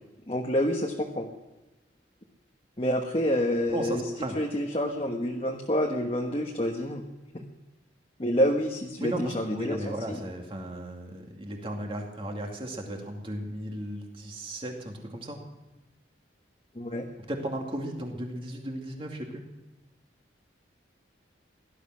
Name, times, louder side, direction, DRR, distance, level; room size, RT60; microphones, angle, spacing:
voice 1, 0.3-1.3 2.8-4.0 4.3-7.0 7.3-7.4 8.2-10.2 16.7-17.1, equal, 30° left, 1 dB, 1.3 m, -28 dB
voice 2, 3.7-4.4 9.0-15.4 17.3-19.4, right 1 dB, 30° right, 2 dB, 2.4 m, -35 dB
17.5 x 12.5 x 6.3 m, 1.1 s
head